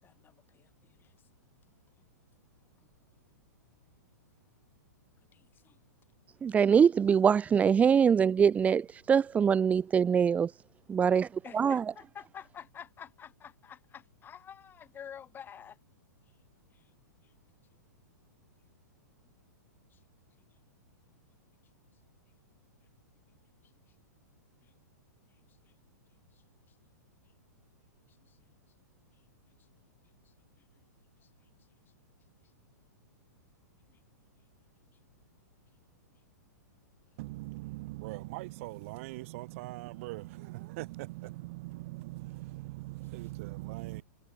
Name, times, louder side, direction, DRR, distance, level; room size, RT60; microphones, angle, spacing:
voice 1, 0.0-1.1 5.3-5.8 11.4-15.8 16.7-16.9 17.2-17.3 19.9-20.0 24.6-24.7 25.6-25.7 26.3-26.4 28.3-28.4 33.9-34.0, left 8 dB, 20° left, 5.9 m, -50 dB
voice 2, 6.4-10.5 10.9-11.3 11.5-11.8, right 7 dB, 15° right, 0.5 m, -23 dB
voice 3, 37.2-44.0, right 21 dB, 45° right, 5.3 m, -41 dB
figure-of-eight pair, 110°, 10 cm